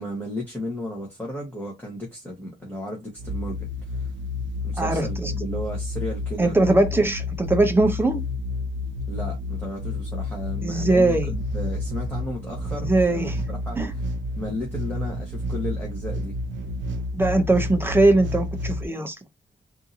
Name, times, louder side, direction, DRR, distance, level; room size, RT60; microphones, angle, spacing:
voice 1, 0.0-4.1 4.6-6.7 9.1-14.0 14.3-16.4, left 1 dB, 10° left, 1.2 m, -34 dB
sound 1, 3.2-18.9, left 2 dB, 75° right, 0.6 m, -30 dB
voice 2, 4.8-5.3 6.4-8.2 10.6-11.3 12.7-13.4 13.8-13.9 17.1-19.2, right 2 dB, 10° right, 0.6 m, -21 dB
3.6 x 2.7 x 2.7 m
wide cardioid pair, 145°, 20 cm